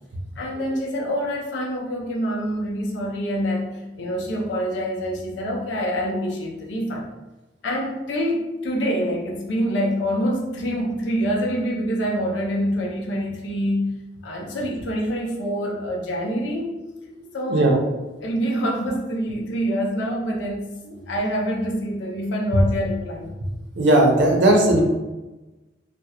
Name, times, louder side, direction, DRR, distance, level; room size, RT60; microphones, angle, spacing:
voice 1, 0.4-7.1 7.6-13.9 14.2-16.7 17.3-17.9 18.2-20.7 21.1-23.4, equal, 80° left, -2 dB, 0.5 m, -26 dB
voice 2, 23.8-24.8, right 1 dB, 70° right, 0 dB, 0.6 m, -17 dB
2.3 x 2.1 x 2.8 m, 1.1 s
head